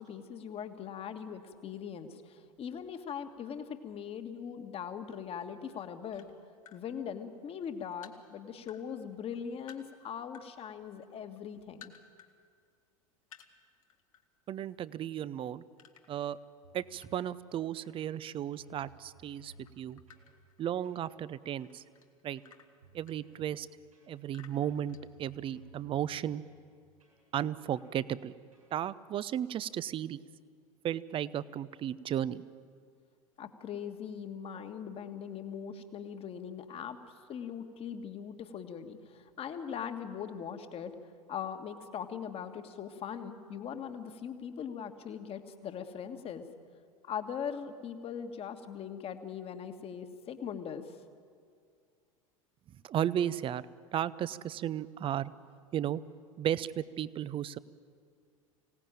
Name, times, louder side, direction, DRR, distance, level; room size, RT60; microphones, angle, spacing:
voice 1, 0.0-6.3 6.7-11.9 33.4-37.0 37.3-40.9 41.3-46.5 47.0-51.0, left 7 dB, 35° left, 8 dB, 1.6 m, -40 dB
sound 1, 6.1-6.8 7.3-8.8 9.1-10.5 10.8-12.3 12.7-12.8 13.2-14.2 14.6-14.8 15.8-17.4 17.9-19.2 19.5-21.1 21.6-23.7 24.3-25.6, left 8 dB, 70° left, 1.6 m, -57 dB
voice 2, 14.5-15.6 16.1-16.4 16.7-20.0 20.6-21.8 22.2-22.4 22.9-23.7 24.1-26.4 27.3-28.3 28.7-30.2 30.8-32.4 52.8-53.7 53.9-55.3 55.7-56.0 56.4-57.6, right 10 dB, 30° right, 18 dB, 0.6 m, -34 dB
sound 2, 16.6-17.2 17.8-18.2 18.5-20.3 20.8-21.1 21.6-21.9 22.4-23.4 23.9-24.4 24.7-26.5 27.0-27.2 27.8-28.0 28.5-28.8, right 2 dB, 85° right, 7.5 m, -59 dB
25.0 x 17.5 x 9.0 m, 2.2 s
figure-of-eight pair, 80°, 18 cm